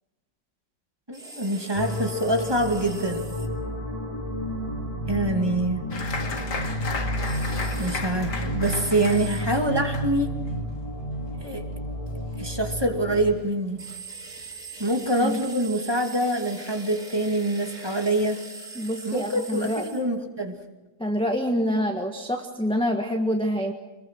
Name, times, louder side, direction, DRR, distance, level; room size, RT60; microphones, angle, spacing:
voice 1, 1.1-3.3 5.1-5.8 7.8-10.3 11.4-11.7 12.4-13.8 14.8-18.4 19.0-20.5, right 1 dB, 15° right, 3 dB, 2.4 m, -25 dB
sound 1, 1.1-3.5 7.2-8.0 8.6-9.5 13.8-20.1, right 4 dB, 70° right, 3.8 m, -42 dB
sound 2, 1.7-13.3, equal, 20° left, 2.8 m, -31 dB
Applause, 5.9-13.0 13.2-14.0 14.4-14.5 14.8-15.2, left 4 dB, 85° left, 2.8 m, -36 dB
voice 2, 18.7-20.0 21.0-23.7, equal, 5° left, 2 dB, 1.4 m, -26 dB
26.0 x 22.0 x 6.3 m, 1.1 s
omnidirectional pair, 1.7 m